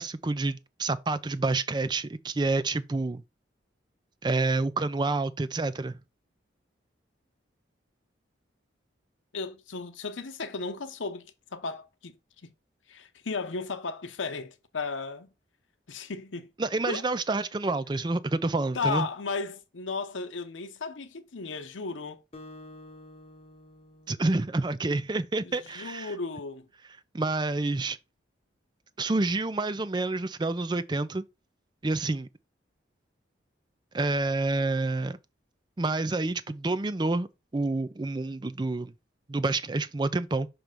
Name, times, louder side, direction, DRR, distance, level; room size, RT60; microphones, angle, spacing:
voice 1, 0.0-3.2 4.2-6.0 16.6-19.1 24.1-26.1 27.1-28.0 29.0-31.2 31.8-32.3 33.9-35.2 35.8-37.3 37.5-38.9 39.3-40.5, right 2 dB, 25° right, 0.4 m, -28 dB
voice 2, 9.3-12.5 12.9-15.3 15.9-16.5 16.8-17.0 18.7-22.2 25.4-26.7, left 4 dB, 90° left, 0.8 m, -35 dB
Acoustic guitar, 22.3-25.1, left 1 dB, 30° left, 1.1 m, -50 dB
6.0 x 3.2 x 5.2 m
head